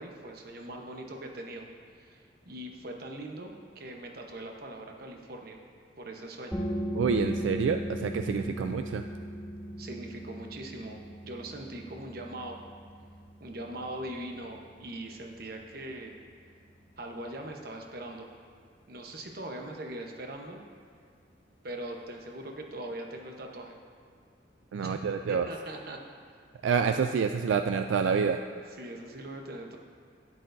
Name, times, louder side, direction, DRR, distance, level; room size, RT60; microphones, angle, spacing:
voice 1, 0.0-1.7 1.9-5.6 6.0-6.6 9.8-12.6 13.4-16.2 17.0-18.3 18.9-20.6 21.6-23.8 24.8-25.0 25.3-26.0 28.8-29.8, right 1 dB, 55° right, 2 dB, 0.9 m, -41 dB
sound 1, 6.5-17.9, equal, 10° left, 0.6 m, -39 dB
voice 2, 7.0-9.0 24.7-25.5 26.6-28.4, right 6 dB, 85° right, 7 dB, 0.3 m, -27 dB
12.0 x 10.0 x 2.6 m, 2.1 s
head